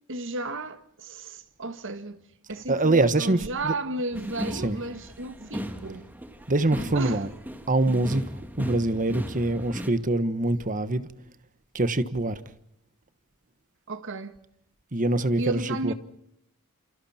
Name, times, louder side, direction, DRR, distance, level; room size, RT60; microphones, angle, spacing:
voice 1, 0.1-2.2 2.5-6.1 6.9-7.2 13.9-14.4 15.4-15.9, right 2 dB, 60° right, 1.8 m, -33 dB
voice 2, 2.7-3.7 4.5-4.8 6.5-7.3 7.7-8.2 8.5-11.1 11.7-12.4 14.9-15.9, right 2 dB, 35° right, 1.3 m, -24 dB
sound 1, 4.1-9.9, equal, 10° right, 2.2 m, -36 dB
29.0 x 28.5 x 4.4 m
head